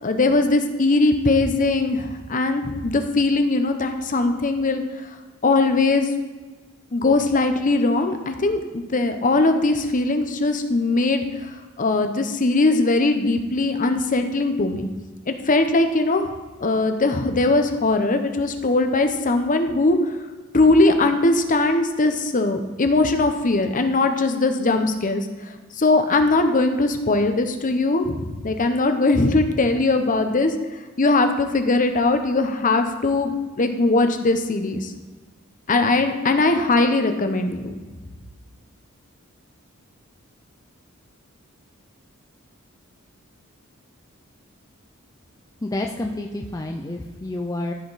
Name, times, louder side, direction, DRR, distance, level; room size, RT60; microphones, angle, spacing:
voice 1, 0.0-4.8 5.4-6.1 6.9-11.2 11.8-14.9 15.3-16.3 16.6-20.2 20.5-25.3 25.8-30.5 31.0-34.9 35.7-37.8, left 2 dB, 40° left, 7 dB, 0.8 m, -20 dB
voice 2, 45.6-47.7, left 1 dB, 15° left, 2 dB, 0.5 m, -29 dB
13.5 x 5.1 x 4.1 m, 1.3 s
head